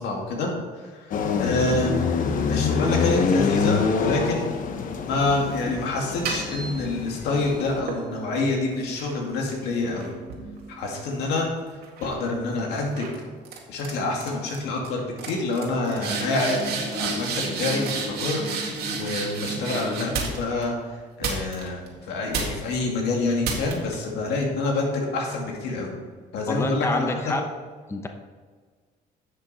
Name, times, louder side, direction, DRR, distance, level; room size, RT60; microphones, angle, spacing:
voice 1, 0.0-2.0 2.5-4.5 5.0-10.1 10.8-11.5 12.0-13.1 13.7-17.3 17.6-25.9 26.3-27.1, left 2 dB, 85° left, 0 dB, 2.3 m, -27 dB
sound 1, 1.1-7.8, left 5 dB, 55° left, 1.0 m, -26 dB
sound 2, 6.0-7.3 7.9-11.4 11.8-12.2 13.0-13.2 13.4-13.9 14.2-14.6 14.8-14.9 15.2-20.6 21.2-21.9 22.3-22.8 23.4-23.9, right 4 dB, 70° right, 2.1 m, -31 dB
voice 2, 26.5-27.5 27.9-28.1, left 2 dB, 15° left, 5 dB, 0.8 m, -26 dB
10.5 x 6.7 x 4.3 m, 1.5 s
cardioid pair, 110°, 17 cm